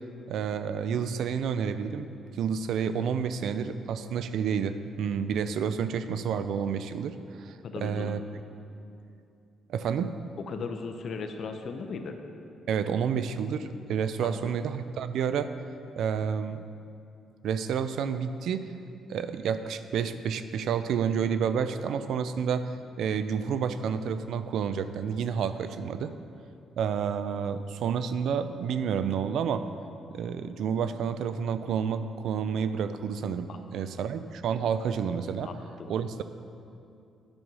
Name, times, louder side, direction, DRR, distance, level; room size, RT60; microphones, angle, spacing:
voice 1, 0.3-8.2 9.7-10.2 12.7-15.5 16.0-16.6 17.4-18.7 19.1-22.7 23.0-26.1 26.8-29.7 30.1-35.5 35.9-36.2, right 7 dB, 75° right, 11 dB, 0.4 m, -30 dB
voice 2, 7.6-8.1 10.5-12.2 14.2-14.5 33.5-33.6 35.4-35.9, left 4 dB, 60° left, 5 dB, 0.7 m, -37 dB
8.8 x 5.4 x 6.1 m, 2.6 s
cardioid pair, 90°, 0 cm